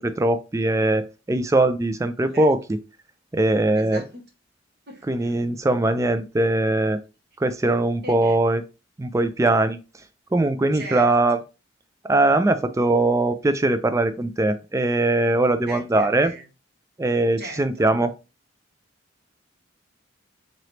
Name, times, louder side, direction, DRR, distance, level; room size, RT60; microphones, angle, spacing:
voice 1, 0.0-2.6 3.3-4.0 5.1-7.0 7.4-8.6 9.0-9.8 10.3-11.4 12.1-16.3 17.0-18.1, right 2 dB, 15° right, 0.3 m, -21 dB
voice 2, 3.8-4.3 4.9-5.3 8.0-8.4 10.7-11.1 15.7-16.5 17.4-17.9, right 1 dB, 50° right, 1.3 m, -39 dB
3.9 x 3.0 x 3.2 m
head